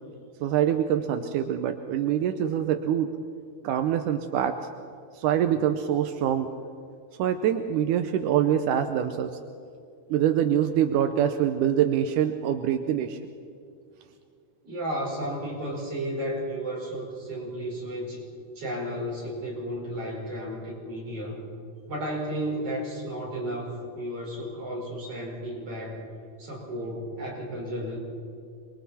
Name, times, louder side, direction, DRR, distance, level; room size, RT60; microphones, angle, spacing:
voice 1, 0.4-3.1 3.6-4.7 5.1-6.5 7.2-9.3 10.1-13.2, right 10 dB, 80° right, 7 dB, 2.2 m, -25 dB
voice 2, 14.6-18.2 18.6-21.4 21.9-26.0 26.4-28.0, equal, 45° right, -3 dB, 6.0 m, -33 dB
28.0 x 23.0 x 4.3 m, 2.4 s
omnidirectional pair, 3.7 m